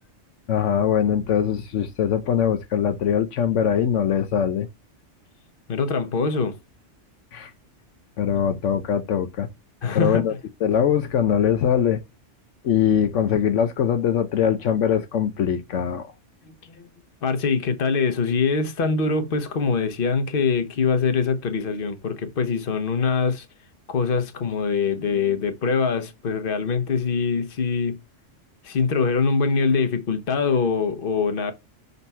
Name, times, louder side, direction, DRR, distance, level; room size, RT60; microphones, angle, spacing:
voice 1, 0.5-4.7 7.3-7.5 8.2-9.5 9.9-10.3 10.6-12.0 12.6-16.1, left 8 dB, 75° left, 1.0 m, -22 dB
voice 2, 5.7-6.6 9.8-10.2 16.4-16.7 17.2-23.5 23.9-28.0 28.6-31.5, left 5 dB, 50° left, 1.1 m, -23 dB
6.0 x 4.0 x 5.5 m
omnidirectional pair, 1.3 m